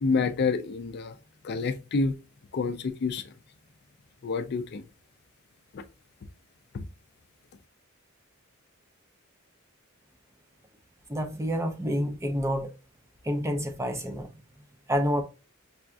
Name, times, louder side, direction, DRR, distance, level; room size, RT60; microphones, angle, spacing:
voice 1, 0.0-1.2 1.4-2.1 2.5-3.2 4.2-4.8 5.7-5.8 6.7-6.8, left 4 dB, 50° left, 0.4 m, -28 dB
voice 2, 11.1-12.7 13.2-14.3 14.9-15.2, equal, 15° right, 0.5 m, -28 dB
5.5 x 2.3 x 2.4 m
head